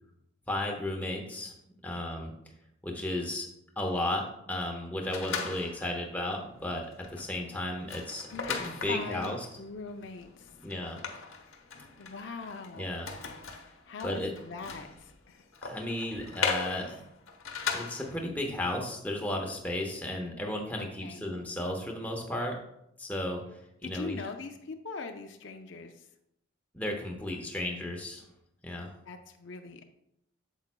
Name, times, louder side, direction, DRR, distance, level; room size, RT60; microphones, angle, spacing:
voice 1, 0.5-1.5 1.8-2.3 2.8-3.5 3.8-9.4 10.6-11.0 12.8-13.1 14.0-14.3 15.6-17.0 17.7-22.6 23.0-24.2 26.7-28.2 28.6-28.9, left 1 dB, 10° left, 0 dB, 0.9 m, -34 dB
sound 1, 5.1-6.0 6.5-6.6 6.9-18.3, left 5 dB, 80° left, 0.9 m, -38 dB
voice 2, 8.3-8.6 8.9-10.5 12.0-13.0 13.9-15.4 20.8-21.3 23.8-26.1 29.1-29.8, left 4 dB, 65° left, 6 dB, 0.5 m, -41 dB
8.7 x 7.2 x 2.2 m, 0.80 s
head